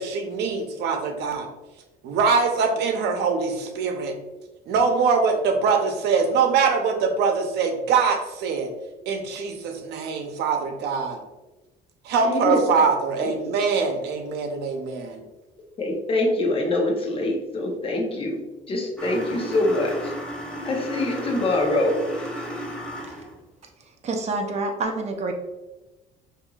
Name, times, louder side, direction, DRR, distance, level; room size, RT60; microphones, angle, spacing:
voice 1, 0.0-1.5 2.0-4.1 4.7-8.7 9.1-11.2 12.0-15.2, right 5 dB, 80° right, 5 dB, 0.7 m, -23 dB
voice 2, 12.2-12.6 13.2-13.5 15.8-18.4 18.7-20.1 20.7-22.0, left 2 dB, 35° left, 1 dB, 0.9 m, -24 dB
sound 1, 19.0-23.4, equal, 5° left, 0.9 m, -34 dB
voice 3, 24.0-25.3, right 3 dB, 40° right, 3 dB, 0.7 m, -27 dB
5.5 x 2.7 x 2.3 m, 1.1 s
cardioid pair, 110°, 17 cm